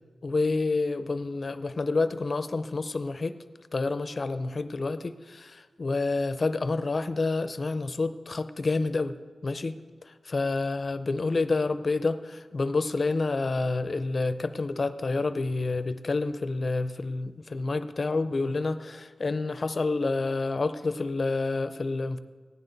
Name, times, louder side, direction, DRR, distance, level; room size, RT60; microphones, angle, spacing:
voice 1, 0.2-3.4 3.7-9.1 9.4-9.8 10.3-22.2, left 3 dB, 50° left, 12 dB, 0.6 m, -28 dB
16.0 x 9.9 x 4.0 m, 1.5 s
cardioid pair, 65°, 0 cm